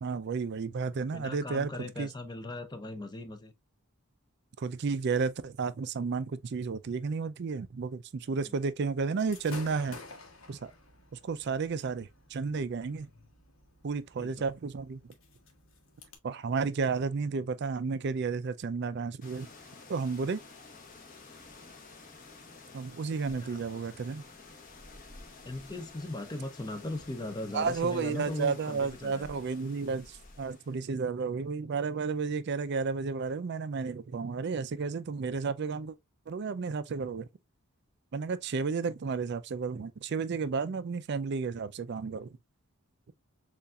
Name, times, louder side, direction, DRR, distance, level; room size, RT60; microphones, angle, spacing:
voice 1, 0.0-2.1 4.6-10.0 10.5-10.7 11.1-13.1 13.8-15.1 16.2-19.5 19.9-20.4 22.7-24.2 27.5-36.0 36.3-37.3 38.1-42.4, right 5 dB, 50° right, 0.4 m, -32 dB
voice 2, 0.9-3.5 8.2-8.5 12.9-13.1 14.1-14.3 23.4-23.6 25.4-29.4, left 2 dB, 20° left, 0.6 m, -39 dB
Gunshot gunfire / Fireworks, 9.2-16.2, left 3 dB, 65° left, 1.2 m, -51 dB
sound 1, 19.2-30.9, left 3 dB, 40° left, 1.0 m, -51 dB
6.8 x 2.5 x 2.3 m
head